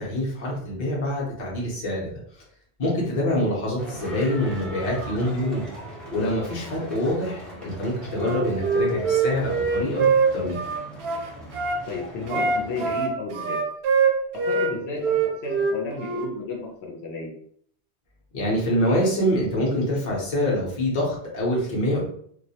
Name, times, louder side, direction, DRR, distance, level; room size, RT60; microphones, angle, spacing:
voice 1, 0.0-2.1 2.8-5.6 6.1-10.1 10.3-10.6 18.3-22.0, equal, 50° left, -4 dB, 0.7 m, -25 dB
sound 1, 3.8-13.0, right 1 dB, ahead, 0.4 m, -39 dB
Wind instrument woodwind instrument, 8.1-11.8 12.3-14.7 15.0-16.3, right 5 dB, 80° right, 0.8 m, -23 dB
voice 2, 11.9-13.6 14.5-17.3, left 3 dB, 85° left, -1 dB, 0.9 m, -33 dB
2.3 x 2.0 x 2.7 m, 0.64 s
omnidirectional pair, 1.1 m